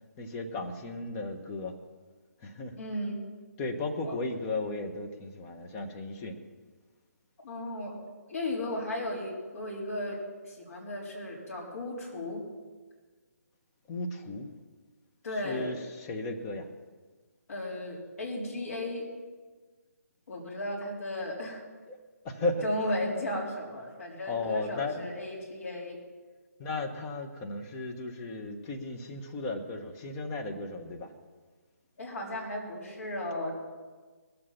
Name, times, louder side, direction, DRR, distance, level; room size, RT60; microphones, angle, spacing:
voice 1, 0.2-1.8 2.4-2.8 3.6-6.4 13.9-14.5 15.4-16.7 21.9-22.0 22.2-22.7 24.3-25.2 26.6-31.1, left 2 dB, 20° left, 2 dB, 1.3 m, -35 dB
voice 2, 2.8-3.2 4.0-4.1 7.4-8.0 8.3-10.2 10.5-12.4 15.2-15.8 17.5-19.1 20.3-21.6 22.6-26.0 32.0-33.6, left 1 dB, 55° left, -2 dB, 3.8 m, -35 dB
21.0 x 7.7 x 5.8 m, 1.4 s
figure-of-eight pair, 150°, 9 cm